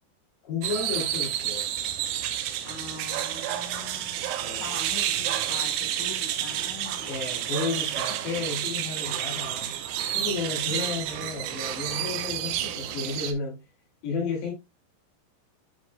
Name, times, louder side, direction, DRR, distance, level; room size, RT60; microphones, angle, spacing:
voice 1, 0.4-1.7 4.4-4.7 7.0-9.7 10.1-13.7 14.0-14.5, left 4 dB, 80° left, 4.8 m, -32 dB
sound 1, 0.6-13.3, right 11 dB, 85° right, 2.9 m, -30 dB
voice 2, 2.6-7.1 8.1-8.3, left 4 dB, 55° left, 4.3 m, -43 dB
11.0 x 4.7 x 2.2 m
omnidirectional pair, 4.8 m